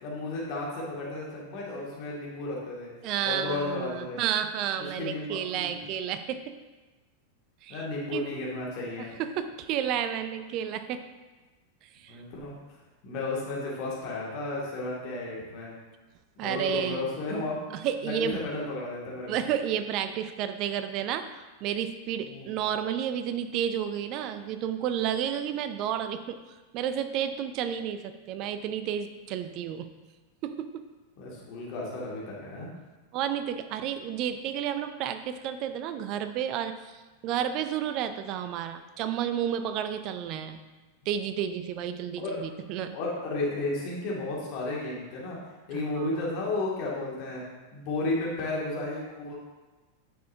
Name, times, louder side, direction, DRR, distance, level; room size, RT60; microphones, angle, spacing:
voice 1, 0.0-2.9 3.2-4.2 5.0-5.8 7.7-9.1 12.1-12.5 13.0-15.7 16.4-17.6 18.0-19.5 22.2-22.6 31.2-32.7 42.2-42.4 42.9-45.4 45.7-47.4 47.7-49.3, left 2 dB, 45° left, -4 dB, 2.2 m, -33 dB
voice 2, 3.0-6.5 7.6-7.8 8.1-8.3 9.2-11.1 12.0-12.2 16.4-17.1 17.7-18.4 19.3-26.4 26.7-29.9 30.4-30.8 33.1-36.8 37.2-40.6 41.1-43.0 45.7-46.1, right 9 dB, 40° right, 10 dB, 0.5 m, -31 dB
9.2 x 6.3 x 2.8 m, 1.2 s
figure-of-eight pair, 90°, 0 cm